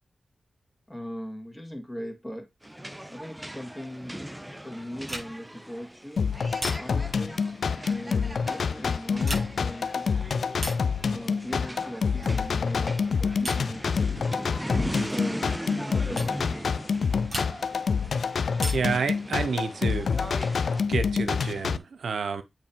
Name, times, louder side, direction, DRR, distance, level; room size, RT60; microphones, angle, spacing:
voice 1, 0.9-2.5 3.1-4.2 4.6-6.2 6.7-7.6 7.8-10.2 11.1-13.9 14.8-15.6 16.0-16.6, equal, 15° left, 1.8 m, -39 dB
sound 1, 2.6-20.8, right 1 dB, 10° right, 0.5 m, -39 dB
sound 2, 5.0-5.6 6.6-7.2 9.1-9.8 10.6-11.0 12.2-12.5 13.4-13.8 15.1-15.3 16.2-16.4 17.3-17.8 18.6-19.1 20.5-21.2, right 1 dB, 45° right, 4.9 m, -37 dB
sound 3, 6.2-21.8, left 5 dB, 75° left, 0.4 m, -27 dB
voice 2, 18.7-20.1 20.9-22.4, right 5 dB, 80° right, 0.6 m, -29 dB
8.6 x 3.2 x 4.4 m
cardioid pair, 40°, 0 cm